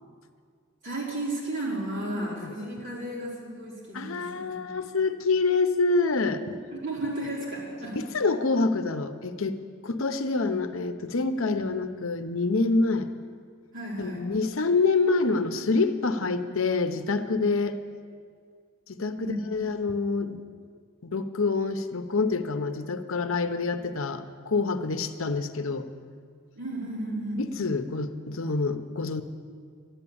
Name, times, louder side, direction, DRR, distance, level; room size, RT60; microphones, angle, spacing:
voice 1, 0.8-4.9 6.7-8.0 13.7-14.2 19.2-19.4 26.6-27.4, right 1 dB, 60° right, -5 dB, 4.9 m, -33 dB
voice 2, 2.2-2.5 3.9-6.6 8.0-9.6 9.8-13.1 14.0-17.8 18.9-20.4 21.0-25.9 27.6-29.2, left 3 dB, 65° left, 9 dB, 0.8 m, -26 dB
12.0 x 11.5 x 8.7 m, 2.1 s
head